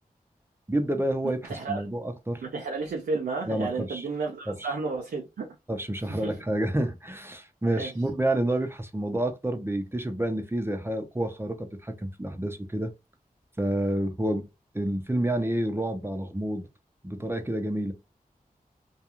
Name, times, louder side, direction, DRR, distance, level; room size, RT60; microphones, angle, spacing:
voice 1, 0.7-2.4 3.5-4.1 4.5-4.7 5.7-12.9 13.6-14.5 14.7-16.7 17.0-17.9, right 1 dB, 15° right, 0.6 m, -29 dB
voice 2, 1.4-1.8 2.4-5.5 6.1-6.4 7.8-7.9, right 4 dB, 90° right, 0.5 m, -32 dB
2.3 x 2.3 x 2.9 m
cardioid pair, 40°, 15 cm